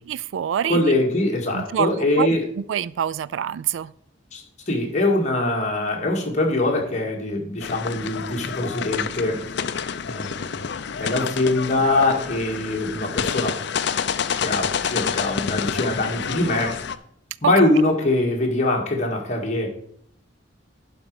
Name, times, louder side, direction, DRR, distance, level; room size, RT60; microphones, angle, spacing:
voice 1, 0.1-0.8 1.5-3.9, right 9 dB, 80° right, 21 dB, 0.3 m, -26 dB
voice 2, 0.7-2.4 4.3-9.4 10.1-10.6 11.0-13.6 14.4-16.7 17.4-19.7, left 2 dB, 40° left, 0 dB, 2.0 m, -23 dB
sound 1, 7.6-17.0, left 7 dB, 65° left, 0.5 m, -28 dB
11.5 x 5.2 x 4.8 m, 0.66 s
head